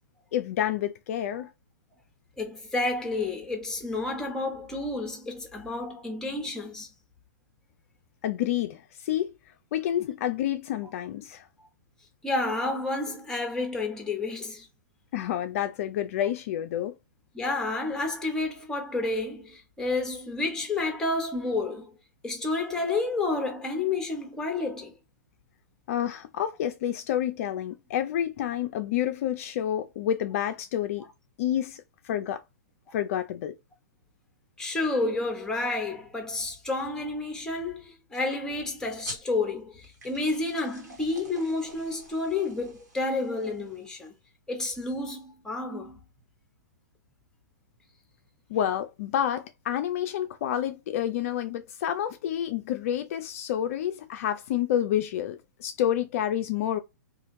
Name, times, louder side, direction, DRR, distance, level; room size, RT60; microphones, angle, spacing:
voice 1, 0.3-1.5 8.2-9.3 9.7-11.5 15.1-16.9 25.9-31.0 31.4-32.4 32.9-33.5 48.5-56.8, left 10 dB, 50° left, 0.3 m, -29 dB
voice 2, 2.4-6.9 12.2-14.7 17.3-22.0 22.2-24.9 32.9-33.0 34.6-44.1 44.5-46.0, left 2 dB, 5° left, 0.9 m, -30 dB
sound 1, 39.0-44.1, right 2 dB, 65° right, 1.4 m, -48 dB
2.8 x 2.5 x 2.6 m
figure-of-eight pair, 115°, 10 cm